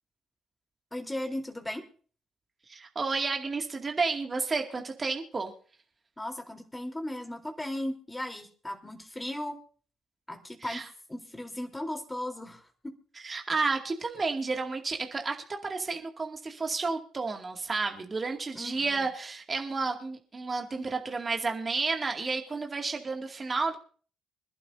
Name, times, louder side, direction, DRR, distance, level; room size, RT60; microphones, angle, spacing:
voice 1, 0.9-1.8 6.2-9.6 10.3-10.8 11.1-13.0 18.6-19.1, left 1 dB, 15° left, 3 dB, 3.7 m, -37 dB
voice 2, 2.7-5.5 10.6-10.9 13.2-15.4 15.6-23.8, right 4 dB, 35° right, 3 dB, 2.3 m, -31 dB
25.5 x 11.5 x 2.7 m, 0.43 s
hypercardioid pair, 50°, 0 cm